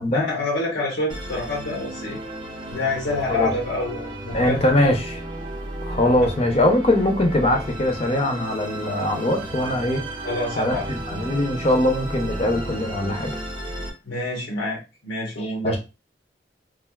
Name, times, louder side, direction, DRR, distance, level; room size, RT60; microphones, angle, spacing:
voice 1, 0.1-2.2 2.7-4.7 10.2-10.8 14.0-15.8, left 2 dB, 85° left, 0.9 m, -27 dB
Musical instrument, 1.1-13.9, right 1 dB, 25° right, 0.6 m, -33 dB
voice 2, 4.3-5.1 5.8-10.0 10.6-13.4 15.6-15.8, left 1 dB, 35° left, 0.6 m, -21 dB
3.3 x 2.4 x 2.3 m
head